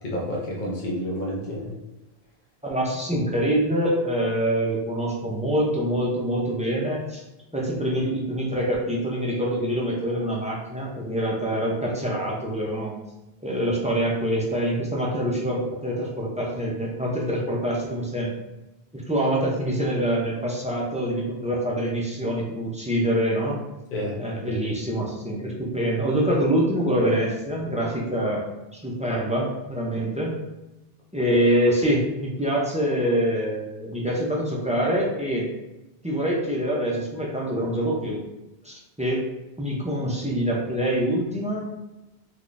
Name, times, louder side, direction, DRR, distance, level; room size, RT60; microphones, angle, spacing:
voice 1, 0.0-1.7 23.9-24.6, equal, 50° left, -4 dB, 0.8 m, -30 dB
voice 2, 2.6-7.2 7.5-12.9 13.4-18.3 18.9-23.6 24.2-28.5 28.7-30.3 31.1-35.5 36.0-38.2 38.6-39.2 39.6-41.6, equal, 10° right, -3 dB, 0.4 m, -25 dB
3.7 x 2.9 x 2.5 m, 1.0 s
omnidirectional pair, 1.0 m